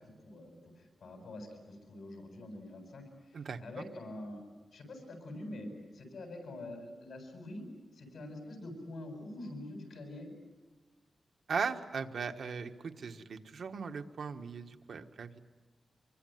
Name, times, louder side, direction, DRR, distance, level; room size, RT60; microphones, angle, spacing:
voice 1, 0.2-4.4 4.7-7.6 7.9-10.3, left 1 dB, 85° left, 4 dB, 7.9 m, -45 dB
voice 2, 11.5-15.4, right 5 dB, 70° right, 6 dB, 1.5 m, -38 dB
25.0 x 23.5 x 9.5 m, 1.2 s
wide cardioid pair, 115°, 0 cm